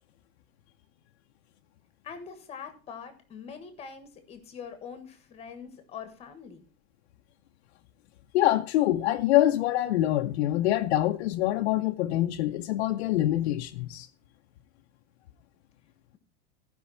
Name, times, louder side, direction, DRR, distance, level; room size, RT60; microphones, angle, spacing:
voice 1, 2.0-6.6, left 6 dB, 20° left, 1.4 m, -43 dB
voice 2, 8.3-14.1, left 14 dB, 85° left, 0.7 m, -25 dB
15.0 x 5.4 x 5.5 m
supercardioid pair, 180°, 32 cm